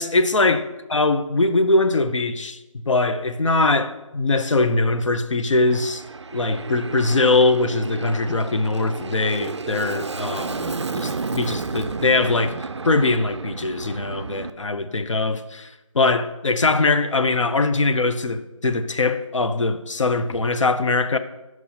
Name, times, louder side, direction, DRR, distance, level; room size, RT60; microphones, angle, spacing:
voice 1, 0.0-2.6 2.9-6.0 6.3-12.5 12.8-21.2, left 3 dB, 65° left, 0.6 m, -21 dB
Aircraft, 5.7-14.5, right 4 dB, 55° right, 0.4 m, -32 dB
10.0 x 6.0 x 2.8 m
figure-of-eight pair, 165°, 17 cm